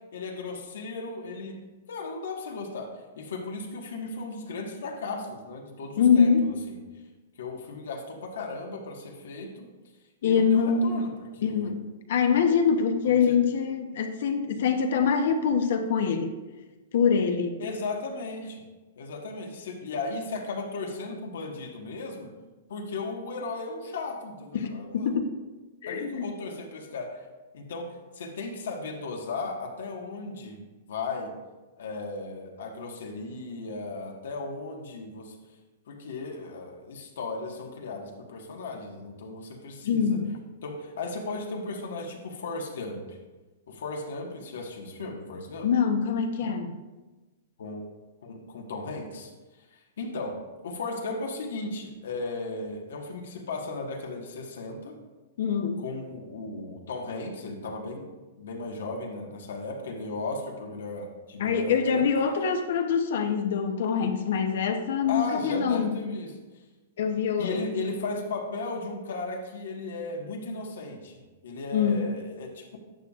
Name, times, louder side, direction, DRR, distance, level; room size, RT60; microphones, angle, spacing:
voice 1, 0.1-1.6 1.9-2.9 3.2-6.8 7.4-9.7 10.2-11.7 13.0-13.4 17.6-18.6 19.0-22.3 22.7-25.2 25.9-27.3 27.5-27.9 28.1-30.6 30.9-31.3 31.8-35.4 35.9-40.2 40.6-43.2 43.7-45.7 47.6-47.8 48.2-49.3 50.0-50.4 50.6-55.0 55.8-58.1 58.4-62.0 65.1-66.3 67.4-72.7, left 3 dB, 80° left, 2 dB, 1.5 m, -36 dB
voice 2, 6.0-6.5 10.2-11.1 11.4-11.8 12.1-16.3 16.9-17.6 24.5-25.3 25.8-26.3 39.8-40.3 45.6-46.8 55.4-55.8 61.4-66.0 67.0-67.7 71.7-72.1, left 6 dB, 65° left, 6 dB, 0.9 m, -24 dB
11.5 x 7.2 x 2.5 m, 1.2 s
hypercardioid pair, 150°, 0 cm